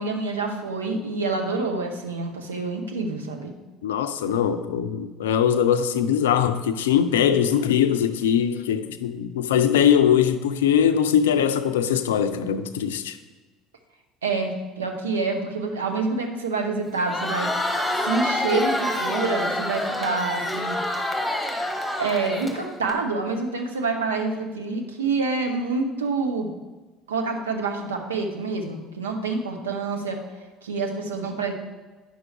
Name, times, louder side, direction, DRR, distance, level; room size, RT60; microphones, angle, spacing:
voice 1, 0.0-3.5 14.2-17.5 18.0-20.8 22.0-26.5 27.1-30.2 30.6-31.5, right 3 dB, 80° right, 0.8 m, -27 dB
voice 2, 3.8-13.2, left 8 dB, 75° left, 0.4 m, -21 dB
Crowd, 16.9-22.9, left 1 dB, 5° left, 1.4 m, -27 dB
9.4 x 6.2 x 3.3 m
figure-of-eight pair, 60°, 0 cm